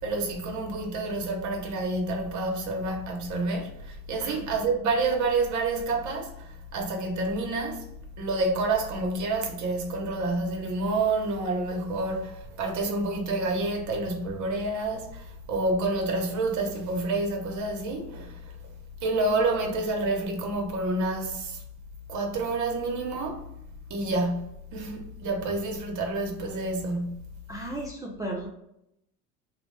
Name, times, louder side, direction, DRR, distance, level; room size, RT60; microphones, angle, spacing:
voice 1, 0.0-7.8 8.2-18.4 19.0-21.6 22.1-23.5 23.9-27.3, right 2 dB, 50° right, 0.9 m, -28 dB
voice 2, 27.5-28.5, right 1 dB, 10° right, 0.4 m, -35 dB
2.9 x 2.0 x 3.2 m
cardioid pair, 110°, 36 cm